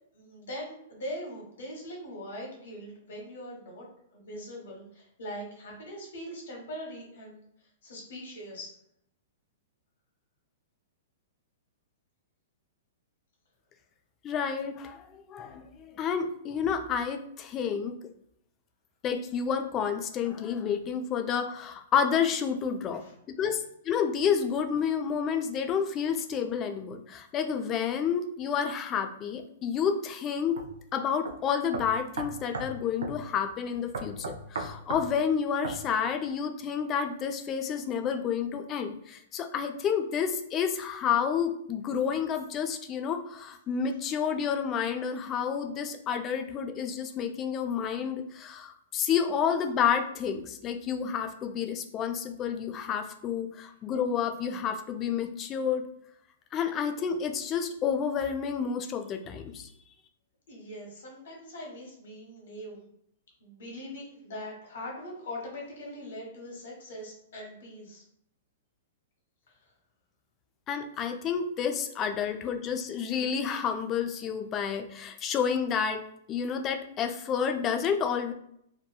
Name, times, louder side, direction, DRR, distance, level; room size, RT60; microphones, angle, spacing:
voice 1, 0.1-3.9 4.1-7.4 7.8-8.7 23.0-23.5 60.5-62.8 63.4-68.0 69.5-69.7, equal, 70° left, -1 dB, 1.1 m, -41 dB
voice 2, 14.2-18.0 19.0-23.6 23.9-30.6 30.9-55.8 56.5-59.7 70.7-76.0 76.3-78.3, left 7 dB, 30° left, 6 dB, 0.3 m, -30 dB
sound 1, 30.6-30.7 31.3-31.4 31.7-32.7 33.0-33.2 33.9-35.1 35.6-35.8, right 3 dB, 75° right, 0.4 m, -35 dB
2.9 x 2.2 x 2.2 m, 0.72 s
hypercardioid pair, 115°, 0 cm